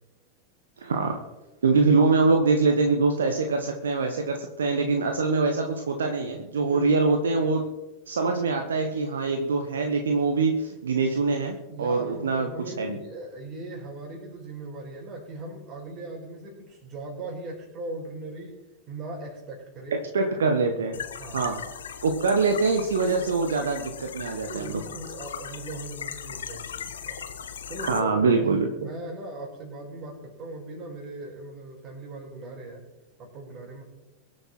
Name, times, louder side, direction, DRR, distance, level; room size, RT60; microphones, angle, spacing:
voice 1, 0.8-1.2 1.6-7.6 8.1-12.5 12.8-12.9 20.1-21.0 21.3-21.6 22.0-24.8 27.8-28.7, right 4 dB, 65° right, 5 dB, 1.4 m, -24 dB
voice 2, 6.6-7.5 11.7-20.0 21.2-21.5 24.5-27.3 27.7-32.8 33.2-33.8, right 2 dB, 35° right, 0 dB, 5.5 m, -39 dB
sound 1, 20.9-28.0, left 7 dB, 65° left, 1.3 m, -38 dB
23.0 x 7.8 x 4.7 m, 1.0 s
figure-of-eight pair, 90°, 0 cm